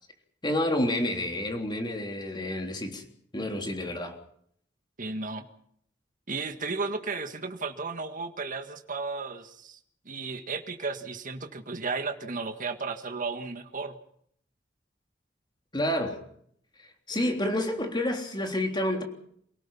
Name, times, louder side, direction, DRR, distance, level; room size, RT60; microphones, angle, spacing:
voice 1, 0.4-3.0 3.3-4.2 15.7-16.2 17.1-19.0, left 1 dB, 25° left, 3 dB, 3.5 m, -29 dB
voice 2, 5.0-5.5 6.3-9.8 10.1-14.0, right 4 dB, 45° right, 6 dB, 1.8 m, -34 dB
28.5 x 18.5 x 5.7 m, 0.67 s
head